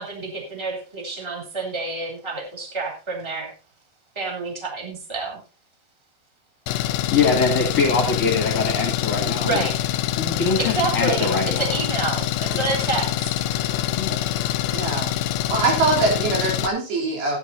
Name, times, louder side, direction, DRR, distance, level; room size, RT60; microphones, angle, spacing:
voice 1, 0.0-3.5 4.1-5.4 9.4-9.7 10.6-11.3 11.6-13.1, right 3 dB, 5° right, -1 dB, 2.4 m, -28 dB
Engine, 6.7-16.7, left 12 dB, 85° left, 2.9 m, -25 dB
voice 2, 7.1-9.7 10.2-11.8 12.2-12.3 14.0-14.4, left 4 dB, 45° left, 0 dB, 2.3 m, -23 dB
voice 3, 14.7-15.1 15.5-17.4, right 3 dB, 70° right, -2 dB, 5.8 m, -22 dB
16.0 x 9.7 x 2.8 m, 0.34 s
omnidirectional pair, 5.2 m